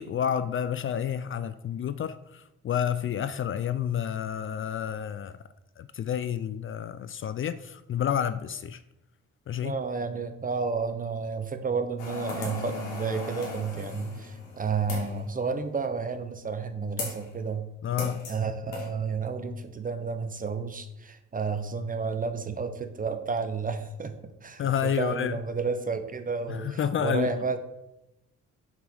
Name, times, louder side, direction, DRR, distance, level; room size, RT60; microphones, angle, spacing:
voice 1, 0.0-5.4 5.8-8.8 9.5-9.8 17.8-18.3 24.6-25.4 26.5-27.3, left 9 dB, 45° left, 0.4 m, -30 dB
voice 2, 9.6-17.7 18.3-27.6, right 5 dB, 30° right, 0.9 m, -31 dB
sound 1, 12.0-15.2 17.0-17.3 18.0-18.4 18.7-18.9, left 3 dB, 90° left, 2.5 m, -37 dB
7.3 x 3.6 x 6.3 m
cardioid pair, 90°, 30 cm